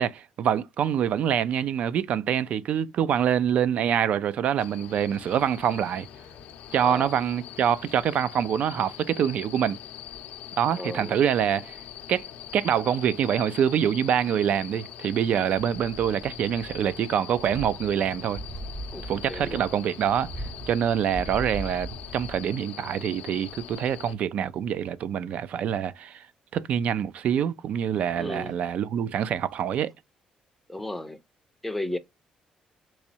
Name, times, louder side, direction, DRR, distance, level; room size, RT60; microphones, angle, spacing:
voice 1, 0.0-6.1 6.7-9.8 10.6-11.8 12.1-12.3 12.5-18.4 19.1-20.3 20.7-26.2 26.5-29.9, right 9 dB, 60° right, 0.3 m, -25 dB
sound 1, 4.6-24.1, left 10 dB, 90° left, 0.5 m, -43 dB
voice 2, 6.8-7.1 10.7-11.2 18.9-19.6 28.2-28.5 30.7-31.2 31.6-32.0, left 1 dB, 5° left, 0.5 m, -34 dB
sound 2, 17.3-22.6 22.9-23.0, right 1 dB, 30° right, 0.8 m, -39 dB
3.5 x 3.0 x 2.7 m
cardioid pair, 130°, 3 cm